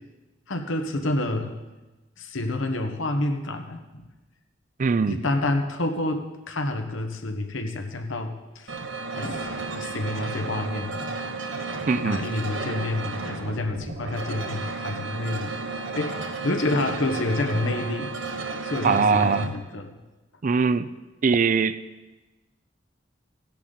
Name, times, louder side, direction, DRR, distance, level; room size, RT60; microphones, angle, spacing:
voice 1, 0.5-1.5 2.2-4.0 5.0-8.8 9.2-11.1 11.9-15.6 15.9-18.1 18.6-20.0, left 2 dB, 90° left, 5 dB, 1.2 m, -28 dB
voice 2, 4.8-5.2 11.9-12.2 18.8-19.5 20.4-20.9 21.2-21.8, right 5 dB, 40° right, 15 dB, 0.4 m, -21 dB
sound 1, 8.7-19.5, right 3 dB, 75° right, 1.1 m, -33 dB
15.5 x 10.5 x 4.0 m, 1.1 s
head